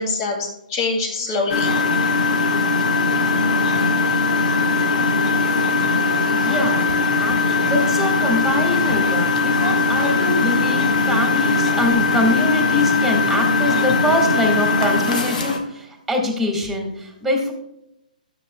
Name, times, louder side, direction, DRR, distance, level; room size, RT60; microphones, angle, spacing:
voice 1, 0.0-1.7 10.3-10.6, left 3 dB, 35° left, 2 dB, 2.4 m, -25 dB
Engine, 1.5-15.6, left 3 dB, 60° left, 1.6 m, -19 dB
voice 2, 6.3-17.5, left 1 dB, ahead, 1 dB, 1.7 m, -23 dB
13.0 x 7.3 x 2.2 m, 0.82 s
hypercardioid pair, 145°, 5 cm